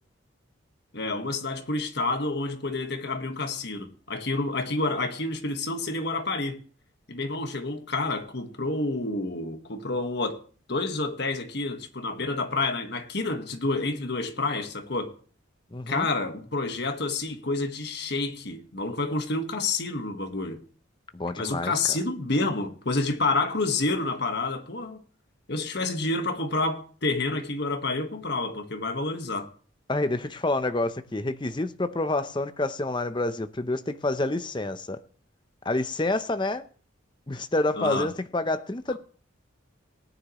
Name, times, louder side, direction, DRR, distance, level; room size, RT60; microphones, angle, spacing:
voice 1, 0.9-6.6 7.1-10.4 10.7-15.1 15.9-20.6 21.4-25.0 25.5-29.5 37.8-38.1, left 3 dB, 55° left, 1.5 m, -29 dB
voice 2, 15.7-16.1 21.1-22.0 29.9-35.0 35.6-36.6 37.3-39.0, left 2 dB, 25° left, 0.7 m, -28 dB
18.5 x 9.9 x 3.1 m
head